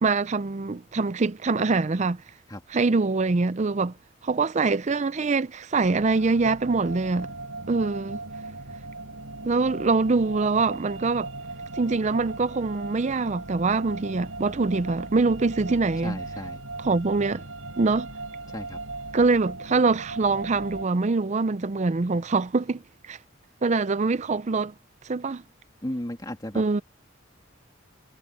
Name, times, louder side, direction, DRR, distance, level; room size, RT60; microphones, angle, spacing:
voice 1, 0.0-2.2 2.7-3.9 4.2-7.3 7.7-8.2 9.4-11.3 11.8-16.2 16.8-17.4 17.8-18.1 19.1-22.8 23.1-23.2 23.6-24.7 25.0-25.4 26.6-26.8, right 3 dB, 35° right, 0.5 m, -24 dB
sound 1, 5.8-20.9, right 2 dB, 85° right, 7.2 m, -38 dB
voice 2, 16.0-16.6 18.5-18.8 25.8-26.8, left 1 dB, 20° left, 2.4 m, -35 dB
head